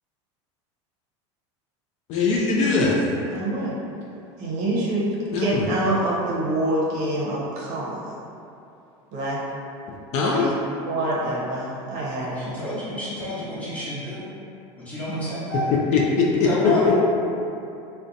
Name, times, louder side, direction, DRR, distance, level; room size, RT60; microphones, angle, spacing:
voice 1, 2.1-3.0 5.3-5.7 10.1-10.5 15.9-16.3, left 4 dB, 50° left, -3 dB, 0.4 m, -21 dB
voice 2, 3.3-3.8 4.4-5.1 5.4-8.1 9.1-9.4 10.2-10.6 10.8-12.5 15.1-15.5, right 1 dB, 55° right, -5 dB, 0.7 m, -26 dB
voice 3, 12.4-14.2 14.8-15.7 16.3-16.9, left 1 dB, 10° left, -11 dB, 1.0 m, -30 dB
2.5 x 2.1 x 2.6 m, 2.7 s
supercardioid pair, 105°, 15 cm